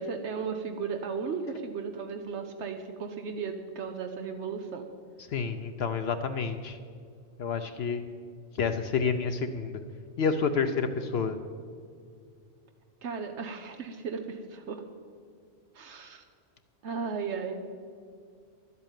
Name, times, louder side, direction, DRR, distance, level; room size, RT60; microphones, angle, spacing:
voice 1, 0.0-4.9 13.0-14.8 15.7-16.2 16.8-17.6, right 5 dB, 80° right, 5 dB, 1.1 m, -35 dB
voice 2, 5.3-6.8 7.4-8.0 8.6-9.8 10.2-11.4, left 5 dB, 65° left, 8 dB, 0.9 m, -29 dB
11.5 x 8.3 x 8.9 m, 2.2 s
omnidirectional pair, 1.2 m